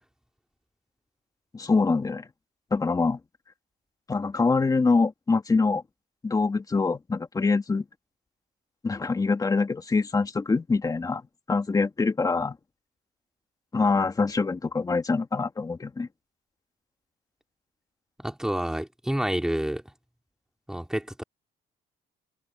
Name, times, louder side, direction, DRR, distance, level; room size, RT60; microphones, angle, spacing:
voice 1, 1.5-2.3 2.7-3.2 4.1-5.8 6.2-7.8 8.8-11.2 11.5-12.6 13.7-16.1, left 4 dB, 20° left, 2.2 m, -24 dB
voice 2, 18.2-19.8 20.7-21.2, right 1 dB, 5° right, 2.9 m, -29 dB
cardioid pair, 110°, 17 cm